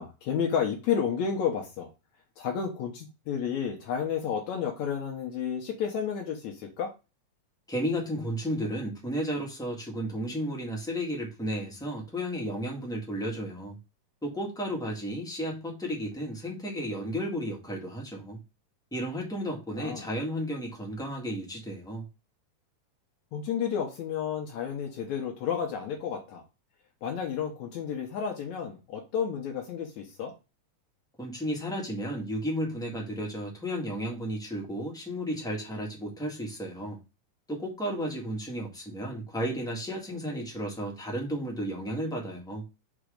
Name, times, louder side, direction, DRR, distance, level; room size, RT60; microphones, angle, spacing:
voice 1, 0.0-1.9 2.4-6.9 19.7-20.1 23.3-26.4 27.0-30.3, left 7 dB, 70° left, 2.3 m, -31 dB
voice 2, 7.7-13.8 14.2-18.4 18.9-22.0 31.2-37.0 37.5-42.6, equal, ahead, 0.9 m, -33 dB
6.2 x 3.6 x 5.0 m
omnidirectional pair, 3.6 m